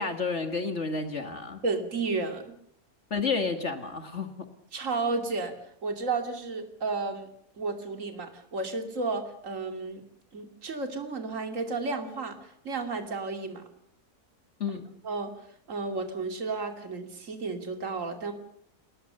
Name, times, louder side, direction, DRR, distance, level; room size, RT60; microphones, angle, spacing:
voice 1, 0.0-1.6 3.1-4.3 14.6-14.9, left 4 dB, 50° left, 7 dB, 2.1 m, -30 dB
voice 2, 1.6-2.6 4.7-5.5 5.8-7.3 7.6-10.0 10.3-13.6 15.0-15.3 15.7-18.3, right 3 dB, 55° right, 6 dB, 3.0 m, -32 dB
29.0 x 21.5 x 6.7 m, 0.71 s
omnidirectional pair, 1.6 m